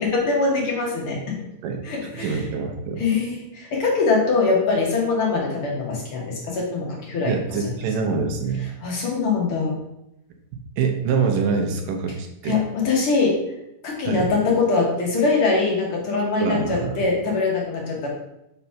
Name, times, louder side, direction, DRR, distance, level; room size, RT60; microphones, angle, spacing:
voice 1, 0.0-1.4 1.8-2.4 3.0-7.3 7.6-7.7 8.8-9.8 12.4-13.4 13.8-18.1, left 4 dB, 55° left, -2 dB, 1.7 m, -23 dB
voice 2, 2.1-3.0 7.3-8.7 10.8-12.6 14.1-14.3 16.4-17.0, right 5 dB, 80° right, 4 dB, 2.4 m, -25 dB
5.6 x 4.0 x 5.7 m, 0.85 s
omnidirectional pair, 3.8 m